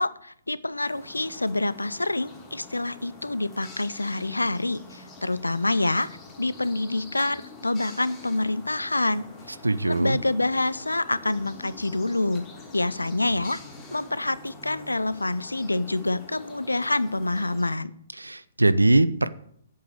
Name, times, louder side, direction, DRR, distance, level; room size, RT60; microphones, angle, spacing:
voice 1, 0.0-6.1 6.4-9.3 9.9-12.5 12.7-13.6 13.9-17.9, left 2 dB, 80° left, 18 dB, 0.6 m, -27 dB
sound 1, 0.8-17.8, left 3 dB, 20° left, 2.5 m, -46 dB
voice 2, 9.6-10.2 18.2-19.3, right 2 dB, 80° right, 16 dB, 0.7 m, -21 dB
10.5 x 8.2 x 6.6 m, 0.67 s
figure-of-eight pair, 125°, 0 cm